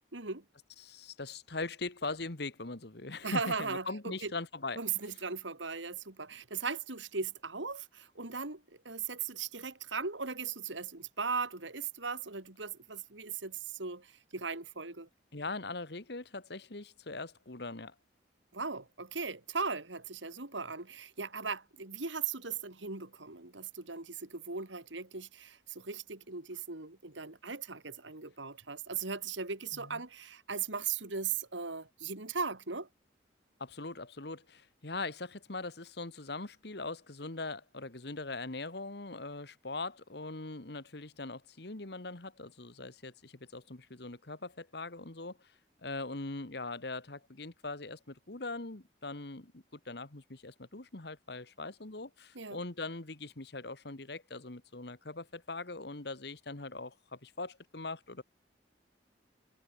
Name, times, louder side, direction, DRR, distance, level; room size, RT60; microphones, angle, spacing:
voice 1, 0.1-0.4 3.2-4.3 4.8-15.1 18.5-32.9 52.3-52.6, right 5 dB, 80° right, 3.1 m, -38 dB
voice 2, 0.8-4.8 15.3-17.9 29.7-30.0 33.6-45.4 45.8-58.2, left 3 dB, 60° left, 1.7 m, -41 dB
head